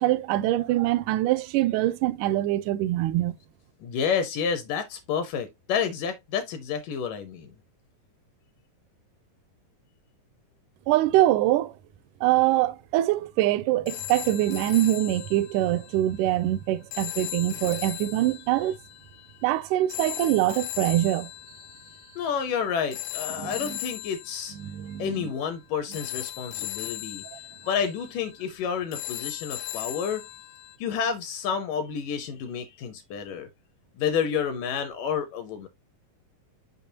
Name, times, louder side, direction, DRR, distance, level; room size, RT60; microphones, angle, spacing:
voice 1, 0.0-3.4 10.9-11.7 12.2-18.8 19.4-21.3 23.4-23.8 24.6-25.3 26.6-26.7, right 14 dB, 80° right, 1.8 m, -24 dB
voice 2, 3.8-7.5 22.2-24.6 25.0-27.2 27.6-30.2 30.8-33.5 34.0-35.7, left 7 dB, 75° left, 2.3 m, -29 dB
sound 1, 13.9-30.8, left 15 dB, 90° left, 2.7 m, -38 dB
6.9 x 5.6 x 2.8 m
omnidirectional pair, 4.1 m